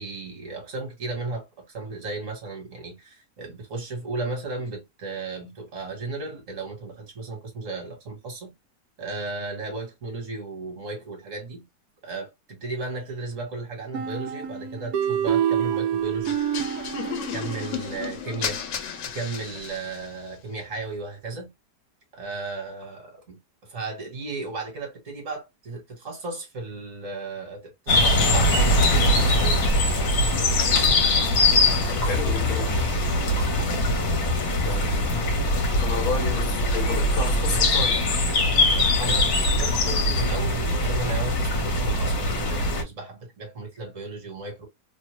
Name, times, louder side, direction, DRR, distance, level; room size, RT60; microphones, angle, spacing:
voice 1, 0.0-8.5 9.0-11.6 12.0-16.4 17.3-18.6 19.1-21.5 22.1-23.4 23.6-29.7 39.0-44.7, right 3 dB, 50° right, 1.5 m, -35 dB
sound 1, 13.9-18.6, right 9 dB, 70° right, 0.9 m, -28 dB
sound 2, 16.2-20.2, left 8 dB, 85° left, 1.3 m, -34 dB
sound 3, 27.9-42.8, left 1 dB, 65° left, 1.4 m, -22 dB
voice 2, 31.9-32.9 34.6-35.3 35.8-38.0, left 4 dB, 40° left, 1.1 m, -32 dB
3.1 x 2.1 x 3.0 m
omnidirectional pair, 1.8 m